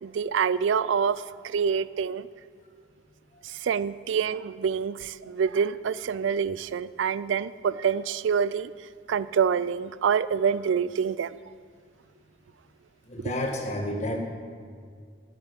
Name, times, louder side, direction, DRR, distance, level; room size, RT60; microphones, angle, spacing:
voice 1, 0.0-2.3 3.4-8.7 9.1-11.4, right 7 dB, 80° right, 17 dB, 0.3 m, -26 dB
voice 2, 13.1-14.2, left 1 dB, 35° left, 2 dB, 1.5 m, -30 dB
9.3 x 7.9 x 9.1 m, 2.1 s
head